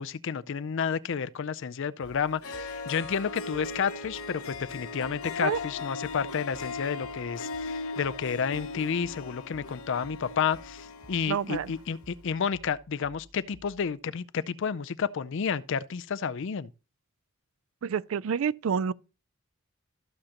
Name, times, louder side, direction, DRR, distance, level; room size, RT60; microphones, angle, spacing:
voice 1, 0.0-16.7, left 6 dB, 60° left, 0.5 m, -31 dB
sound 1, 2.0-14.0, right 1 dB, 85° right, 4.1 m, -56 dB
Harp, 2.1-2.2 2.4-11.9, left 4 dB, 90° left, 0.9 m, -39 dB
voice 2, 11.3-11.7 17.8-18.9, right 7 dB, 70° right, 0.4 m, -28 dB
14.0 x 6.4 x 2.9 m
head